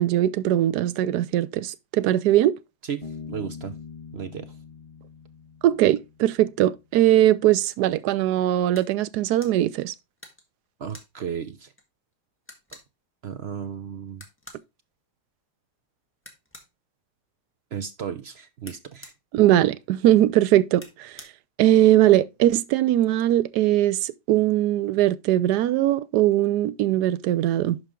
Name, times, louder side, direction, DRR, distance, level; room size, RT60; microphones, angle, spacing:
voice 1, 0.0-2.5 5.6-9.9 19.3-21.1 21.6-27.8, right 13 dB, 75° right, 1.1 m, -20 dB
voice 2, 2.8-3.8 4.1-4.5 10.8-11.7 13.2-14.2 17.7-19.1, right 7 dB, 55° right, 0.8 m, -34 dB
Bass guitar, 3.0-6.5, left 5 dB, 25° left, 1.3 m, -42 dB
sound 1, 8.7-8.9 9.3-9.6 10.2-11.1 11.8-11.9 12.1-12.2 12.5-12.9 14.1-14.6 16.2-16.7 18.6-19.2 20.7-21.3, left 1 dB, 10° left, 1.5 m, -47 dB
11.5 x 4.8 x 3.6 m
omnidirectional pair, 1.8 m